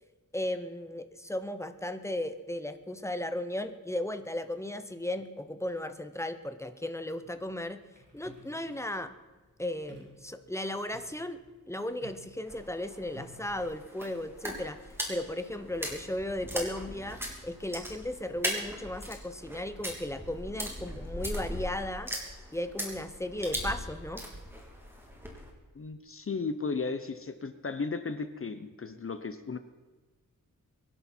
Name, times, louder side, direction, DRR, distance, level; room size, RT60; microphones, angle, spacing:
voice 1, 0.3-7.8 8.1-9.1 9.6-11.4 11.7-14.8 15.1-22.1 22.5-24.2, left 1 dB, 10° left, 10 dB, 0.9 m, -35 dB
sound 1, 7.2-13.5, right 2 dB, 30° right, 6.6 m, -54 dB
sound 2, 12.5-25.5, equal, 5° right, 3.0 m, -39 dB
voice 2, 25.7-29.6, left 4 dB, 40° left, 10 dB, 0.8 m, -35 dB
24.5 x 11.0 x 4.5 m, 1.3 s
wide cardioid pair, 140°, 33 cm